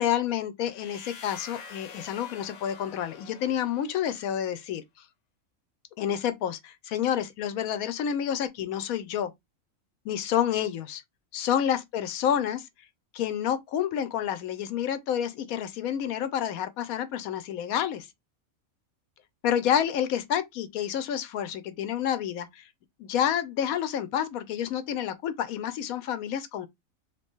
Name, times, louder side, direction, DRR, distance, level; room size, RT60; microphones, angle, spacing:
voice 1, 0.0-4.8 6.0-9.3 10.0-11.0 11.3-12.7 13.1-18.1 19.4-22.7 23.0-26.7, left 9 dB, 90° left, 1.1 m, -29 dB
sound 1, 0.7-4.5, left 5 dB, 65° left, 0.4 m, -47 dB
2.8 x 2.6 x 3.5 m
omnidirectional pair, 1.5 m